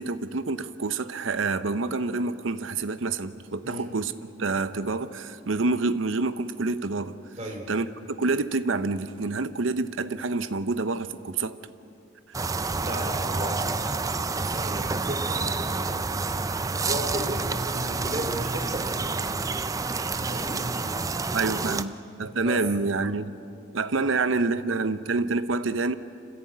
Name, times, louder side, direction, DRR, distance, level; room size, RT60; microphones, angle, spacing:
voice 1, 0.0-7.1 7.7-11.6 20.2-20.3 21.3-23.4 23.7-25.9, right 3 dB, 85° right, 13 dB, 0.8 m, -27 dB
voice 2, 7.4-7.7 12.8-13.6 14.3-19.4 20.3-20.7 22.4-22.6, right 1 dB, 35° right, 1 dB, 2.8 m, -35 dB
sound 1, 12.3-21.8, right 3 dB, 15° right, 0.5 m, -28 dB
26.5 x 15.0 x 8.6 m, 2.7 s
head